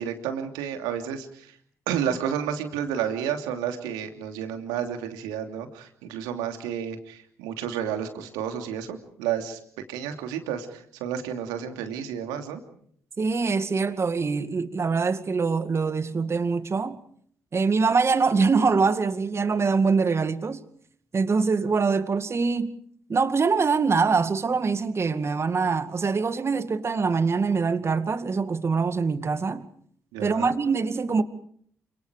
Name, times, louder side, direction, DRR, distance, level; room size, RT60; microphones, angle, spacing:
voice 1, 0.0-1.5 1.9-9.6 9.9-12.6 30.1-30.6, right 9 dB, 75° right, 2.9 m, -31 dB
voice 2, 13.2-17.0 17.5-20.6 21.1-22.8 23.1-29.7 30.2-31.2, right 4 dB, 40° right, 2.2 m, -24 dB
29.0 x 26.5 x 5.1 m
hypercardioid pair, 40°, 7 cm